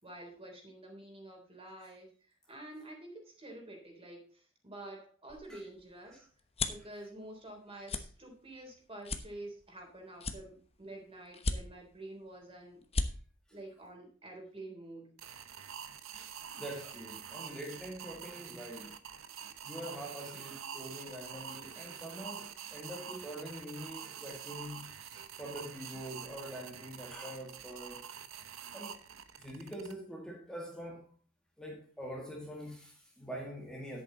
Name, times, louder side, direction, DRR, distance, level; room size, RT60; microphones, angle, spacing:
voice 1, 0.0-6.3 6.7-12.8 13.5-15.1, right 1 dB, 30° right, 3.7 m, -49 dB
sound 1, 5.3-6.9 7.4-7.6 7.8-8.0 8.5-8.6 9.0-9.8 10.2-10.9 11.3-12.0 12.4-12.5 12.8-13.1, left 3 dB, 30° left, 1.0 m, -35 dB
sound 2, 15.2-29.9, right 8 dB, 80° right, 1.0 m, -46 dB
voice 2, 16.1-19.0 19.6-28.0 28.7-29.0 29.4-31.1 31.6-34.0, equal, 5° left, 1.9 m, -45 dB
10.5 x 8.3 x 3.9 m
head